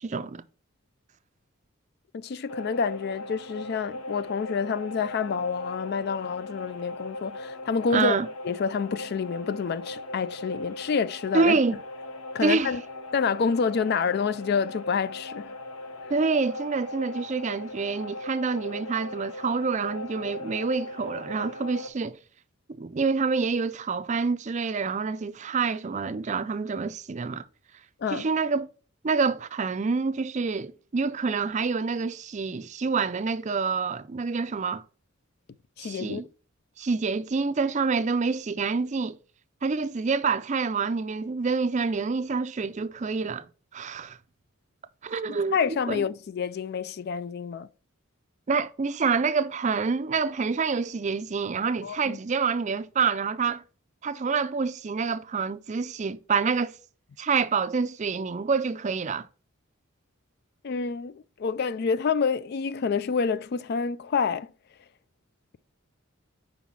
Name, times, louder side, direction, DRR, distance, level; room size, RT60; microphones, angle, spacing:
voice 1, 0.0-0.4 7.9-8.3 11.3-11.8 12.4-12.7 16.1-22.2 22.8-27.4 28.1-28.7 29.0-34.8 35.8-36.3 36.8-39.2 39.6-43.5 43.7-44.2 45.0-45.6 45.9-46.0 48.5-53.6 54.0-56.7 57.2-59.3, right 4 dB, 35° right, 0.4 m, -27 dB
voice 2, 2.1-8.2 8.4-11.6 12.3-12.8 13.1-15.5 28.0-28.3 35.8-36.2 45.3-47.7 51.8-52.2 60.6-64.5, left 5 dB, 50° left, 0.3 m, -28 dB
sound 1, 2.5-21.9, left 2 dB, 80° left, 1.0 m, -39 dB
5.6 x 5.0 x 5.8 m
head